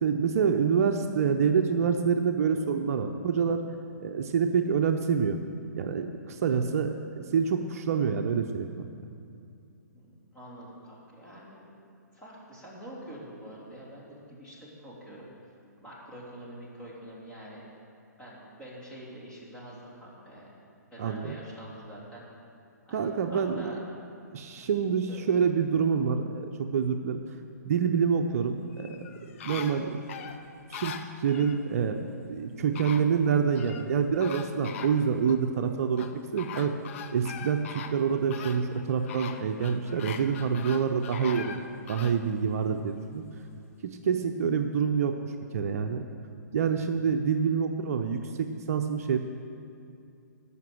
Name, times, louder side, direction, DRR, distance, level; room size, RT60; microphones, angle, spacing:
voice 1, 0.0-3.6 4.0-5.4 5.8-8.9 21.0-21.4 22.9-23.7 24.3-27.2 27.6-29.0 29.4-30.0 30.7-36.7 37.1-41.6 41.9-43.2 43.8-45.2 45.5-46.0 46.5-49.2, right 6 dB, 55° right, 5 dB, 0.7 m, -27 dB
voice 2, 10.3-11.7 12.1-15.5 15.8-17.6 18.2-20.5 20.9-22.2 22.9-23.8 24.5-24.7 25.1-25.2, right 1 dB, 10° left, -7 dB, 3.1 m, -46 dB
sound 1, 28.7-31.6 32.4-32.5 32.7-33.9 34.2-35.4 36.0-42.2 42.7-42.8, left 7 dB, 45° left, 0.7 m, -41 dB
14.0 x 5.9 x 7.7 m, 2.5 s
hypercardioid pair, 140°, 10 cm